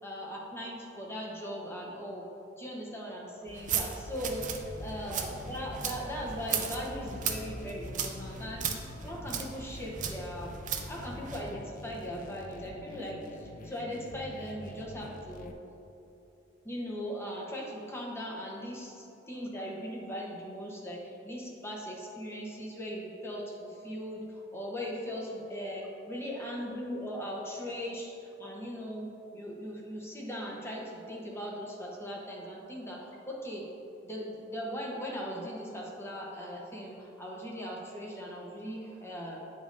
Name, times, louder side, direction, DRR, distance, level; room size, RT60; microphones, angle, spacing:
voice 1, 0.0-2.3 2.6-8.7 9.0-10.5 10.9-15.6 16.6-28.1 28.4-33.7 34.0-39.4, equal, 15° left, -3 dB, 0.9 m, -39 dB
sound 1, 3.5-11.5, right 7 dB, 40° right, 0.5 m, -37 dB
sound 2, 4.2-15.5, left 2 dB, 40° left, 0.4 m, -46 dB
8.6 x 5.2 x 2.6 m, 2.9 s
head